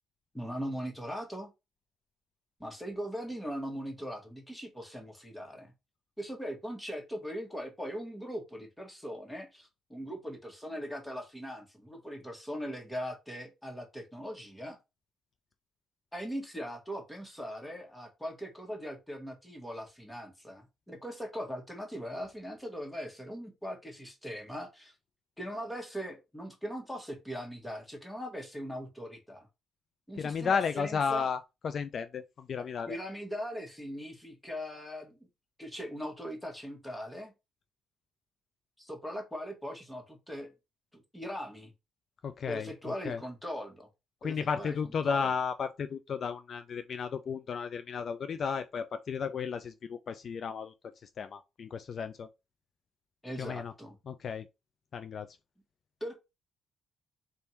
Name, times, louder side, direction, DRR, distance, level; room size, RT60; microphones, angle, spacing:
voice 1, 0.3-1.5 2.6-5.7 6.2-14.8 16.1-24.9 25.4-29.5 30.1-31.3 32.6-35.2 35.6-37.3 38.8-40.5 40.9-41.7 42.5-43.9 44.2-44.7 45.0-45.2 53.2-54.0 56.0-56.2, equal, 5° left, 1.5 m, -40 dB
voice 2, 30.2-33.0 42.2-43.2 44.2-52.3 53.4-53.7 54.1-54.5 54.9-55.3, left 6 dB, 55° left, 0.3 m, -34 dB
3.5 x 2.6 x 4.3 m
cardioid pair, 90°, 0 cm